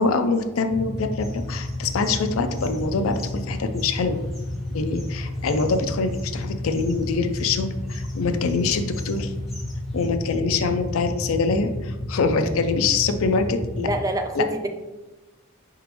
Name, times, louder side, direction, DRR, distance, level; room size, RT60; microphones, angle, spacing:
voice 1, 0.0-4.2 4.7-9.3 9.9-13.9 14.3-14.4, left 4 dB, 80° left, 7 dB, 0.4 m, -24 dB
sound 1, 0.7-13.9, left 1 dB, 40° left, 1.0 m, -31 dB
sound 2, 1.2-10.1, left 1 dB, ahead, 1.4 m, -49 dB
voice 2, 13.8-14.7, right 1 dB, 15° right, 5 dB, 0.3 m, -26 dB
4.9 x 3.6 x 3.0 m, 1.1 s
head